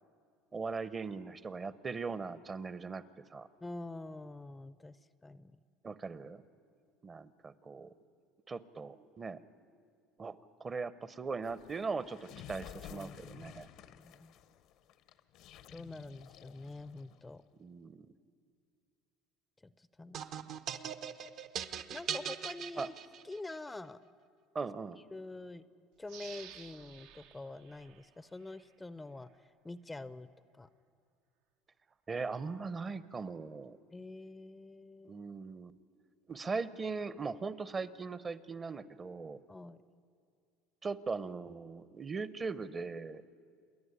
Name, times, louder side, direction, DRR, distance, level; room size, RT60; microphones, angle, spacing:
voice 1, 0.5-3.0 3.3-3.5 5.8-6.4 7.0-7.9 8.5-9.4 10.2-13.7 17.6-18.1 22.8-22.9 24.5-25.0 32.1-33.8 35.0-35.7 36.3-39.4 40.8-43.2, right 4 dB, 25° right, 16 dB, 0.8 m, -39 dB
voice 2, 3.6-5.6 12.9-14.3 15.7-17.4 19.6-20.5 21.9-22.9 23.2-24.0 25.1-25.7 26.0-30.3 30.5-30.7 33.9-35.2 39.5-39.8, left 2 dB, 15° left, 15 dB, 0.6 m, -46 dB
sound 1, 11.4-17.3, left 10 dB, 65° left, 0.8 m, -53 dB
sound 2, 20.1-23.5, right 8 dB, 55° right, 0.9 m, -40 dB
sound 3, 26.1-28.7 29.2-29.3, right 9 dB, 80° right, 1.0 m, -54 dB
28.0 x 10.5 x 9.7 m, 2.2 s
supercardioid pair, 95°, 0 cm